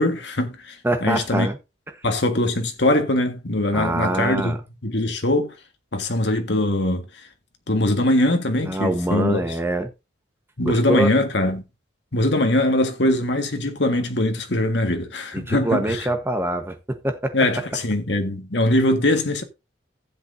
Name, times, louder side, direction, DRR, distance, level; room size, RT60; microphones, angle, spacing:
voice 1, 0.0-1.5 2.0-4.6 4.8-5.5 5.9-7.1 7.7-9.4 10.6-11.6 12.1-16.1 17.3-19.4, left 1 dB, 70° left, 1.7 m, -22 dB
voice 2, 0.8-1.6 3.7-4.6 8.6-9.9 10.6-11.1 15.3-17.4, right 1 dB, 10° right, 1.1 m, -24 dB
15.0 x 7.8 x 2.7 m
head